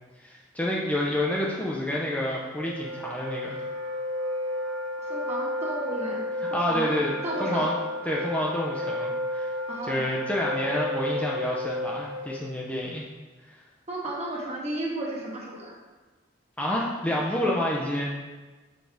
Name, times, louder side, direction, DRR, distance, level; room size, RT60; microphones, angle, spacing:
voice 1, 0.2-3.6 6.5-7.1 7.4-7.8 8.0-9.5 9.8-13.0 13.5-13.6 16.6-18.1, left 1 dB, 10° left, -4 dB, 0.5 m, -28 dB
Wind instrument woodwind instrument, 2.6-12.5, left 1 dB, 80° right, 0.9 m, -32 dB
voice 2, 5.1-6.2 6.5-6.9 7.2-7.7 9.7-10.0 13.9-15.7, right 1 dB, 35° right, -4 dB, 1.4 m, -33 dB
6.3 x 4.6 x 3.4 m, 1.3 s
head